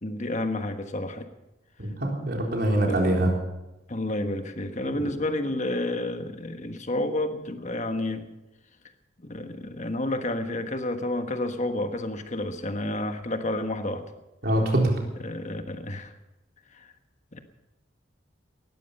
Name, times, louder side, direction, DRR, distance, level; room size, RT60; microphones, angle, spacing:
voice 1, 0.0-1.3 2.9-3.0 3.9-8.3 9.2-14.0 15.2-16.2 16.7-16.9 17.3-17.4, left 1 dB, 40° left, 7 dB, 1.4 m, -30 dB
voice 2, 1.8-3.3 4.8-5.1 14.4-15.0, right 1 dB, 55° right, 0 dB, 3.9 m, -24 dB
19.0 x 14.0 x 5.5 m, 0.98 s
head